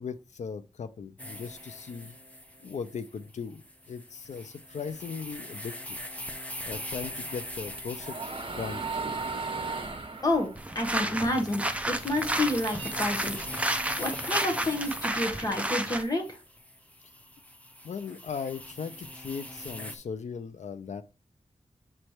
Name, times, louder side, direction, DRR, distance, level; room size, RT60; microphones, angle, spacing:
voice 1, 0.0-2.2 2.6-6.0 6.6-8.2 8.5-8.8 17.0-17.1 17.8-21.0, left 6 dB, 90° left, 0.5 m, -38 dB
sound 1, 1.2-20.0, left 1 dB, 10° left, 0.9 m, -42 dB
sound 2, 7.3-11.8 12.2-13.8, right 4 dB, 45° right, 1.3 m, -36 dB
voice 2, 10.2-13.4 14.0-16.4, left 1 dB, 30° left, 1.5 m, -29 dB
sound 3, 10.6-16.0, right 1 dB, 10° right, 0.6 m, -31 dB
7.4 x 3.3 x 4.5 m
wide cardioid pair, 105°, 12 cm